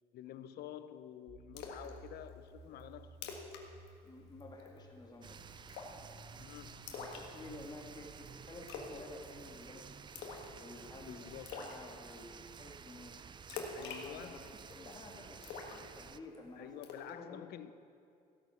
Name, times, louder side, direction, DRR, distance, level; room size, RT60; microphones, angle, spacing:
voice 1, 0.0-3.2 6.3-6.9 11.0-11.9 13.7-14.4 16.6-17.7, left 11 dB, 70° left, 0.6 m, -49 dB
sound 1, 1.3-11.0, right 2 dB, 60° right, 3.3 m, -58 dB
Splash splatter, 1.6-1.9 2.3-2.4 2.8-2.9 3.1-3.6 3.9-4.1 4.4-4.8 5.7-6.1 6.9-7.8 8.7-9.0 9.2-9.6 10.2-10.5 10.8-10.9 11.5-11.8 13.5-14.8 15.4-16.4 16.8-17.1, left 5 dB, 85° left, 1.5 m, -45 dB
voice 2, 4.0-5.4 6.9-10.3 10.5-16.7 17.0-17.5, left 2 dB, 25° left, 1.9 m, -52 dB
sound 2, 5.2-16.2, right 7 dB, 25° right, 0.4 m, -53 dB
15.0 x 8.6 x 5.7 m
cardioid pair, 110°, 17 cm